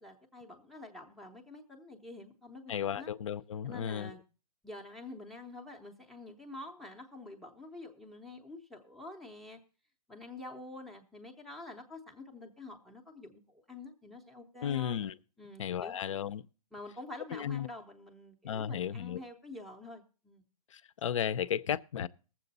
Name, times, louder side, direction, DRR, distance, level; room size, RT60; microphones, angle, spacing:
voice 1, 0.0-3.1 3.6-4.2 4.6-9.6 10.1-15.0 15.4-16.1 16.7-20.5, left 2 dB, ahead, 0.6 m, -47 dB
voice 2, 2.7-4.1 14.6-15.1 15.6-16.4 17.3-17.7 18.4-19.2 20.7-22.1, left 9 dB, 50° left, 0.6 m, -34 dB
19.5 x 7.6 x 4.0 m
hypercardioid pair, 165°, 20 cm